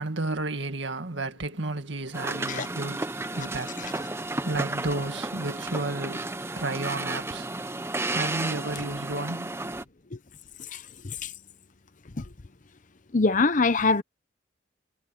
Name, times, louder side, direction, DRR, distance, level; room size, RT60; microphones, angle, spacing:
voice 1, 0.0-7.5 8.1-9.7, right 2 dB, 70° right, 2.1 m, -33 dB
sound 1, 2.1-9.8, right 2 dB, 15° right, 0.8 m, -33 dB
voice 2, 10.7-11.3 12.2-12.3 13.1-14.0, left 3 dB, 40° left, 0.8 m, -24 dB
head